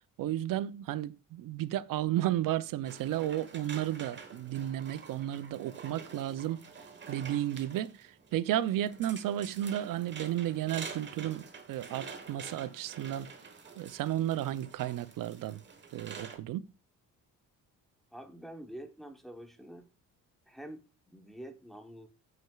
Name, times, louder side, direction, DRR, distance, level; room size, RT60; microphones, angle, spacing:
voice 1, 0.0-6.6 7.1-13.3 13.8-15.6 15.9-16.7, right 12 dB, 70° right, 0.5 m, -33 dB
sound 1, 2.9-16.4, right 5 dB, 35° right, 1.2 m, -48 dB
voice 2, 18.1-19.9 20.5-22.1, right 1 dB, ahead, 0.9 m, -47 dB
8.9 x 6.0 x 2.3 m
cardioid pair, 140°, 34 cm